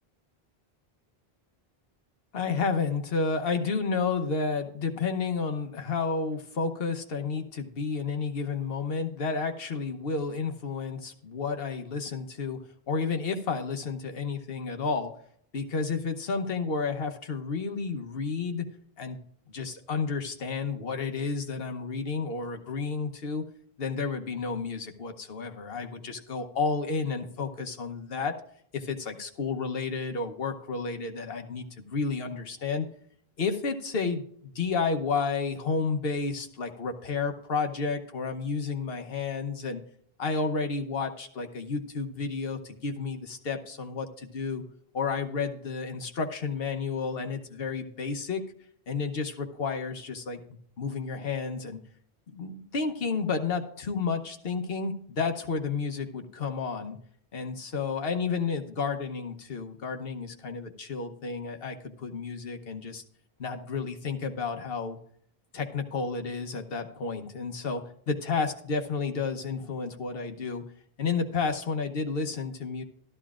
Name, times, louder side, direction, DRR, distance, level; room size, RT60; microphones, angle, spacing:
voice 1, 2.3-12.6 12.9-15.1 15.5-18.6 19.0-19.2 19.5-23.4 23.8-28.4 28.7-32.9 33.4-39.8 40.2-44.6 44.9-48.4 48.9-50.4 50.8-51.8 52.3-57.0 57.3-63.0 63.4-65.0 65.5-70.6 71.0-72.8, left 4 dB, 70° left, 5 dB, 1.2 m, -31 dB
12.5 x 12.0 x 2.4 m, 0.65 s
omnidirectional pair, 1.0 m